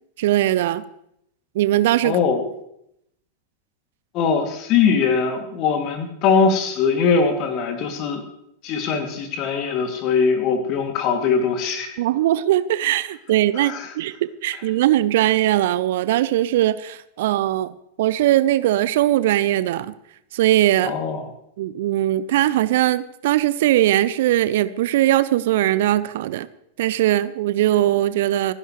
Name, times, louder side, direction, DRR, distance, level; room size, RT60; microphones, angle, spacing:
voice 1, 0.2-0.8 1.5-2.2 12.0-19.9 20.3-20.9 21.6-26.5 26.8-28.5, right 14 dB, 55° right, 16 dB, 0.5 m, -20 dB
voice 2, 2.0-2.4 4.1-8.2 8.6-11.9 13.6-13.9 20.8-21.2, left 5 dB, 40° left, 5 dB, 2.5 m, -21 dB
27.0 x 11.0 x 3.2 m, 0.77 s
figure-of-eight pair, 90°, 0 cm